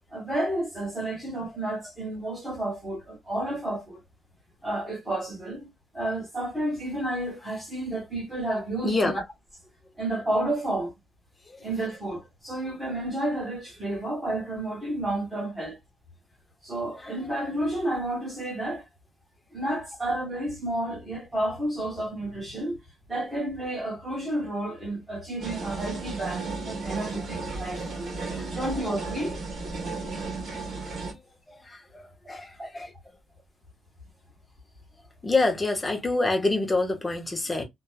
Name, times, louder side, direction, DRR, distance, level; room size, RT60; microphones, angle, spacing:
voice 1, 0.1-4.0 4.6-5.7 5.9-9.2 10.0-10.9 11.6-15.8 16.6-18.9 19.5-22.8 23.1-28.1 28.5-29.4 32.6-32.7, right 1 dB, 10° right, 1.5 m, -31 dB
sound 1, 25.4-31.1, right 3 dB, 50° right, 1.2 m, -34 dB
voice 2, 31.7-32.0 32.3-32.9 35.2-37.6, left 2 dB, 15° left, 0.6 m, -26 dB
2.9 x 2.2 x 2.2 m
wide cardioid pair, 175°, 0 cm